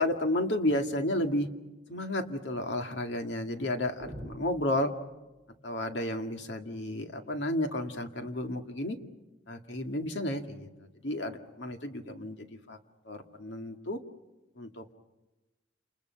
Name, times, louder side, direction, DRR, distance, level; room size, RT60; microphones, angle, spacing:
voice 1, 0.0-1.5 1.9-4.9 5.6-9.0 9.5-10.7 11.0-12.8 13.1-14.0 14.6-14.9, left 1 dB, 70° left, 5 dB, 2.2 m, -32 dB
sound 1, 4.0-5.6, equal, 30° right, 3.3 m, -46 dB
29.0 x 29.0 x 5.9 m, 1.1 s
head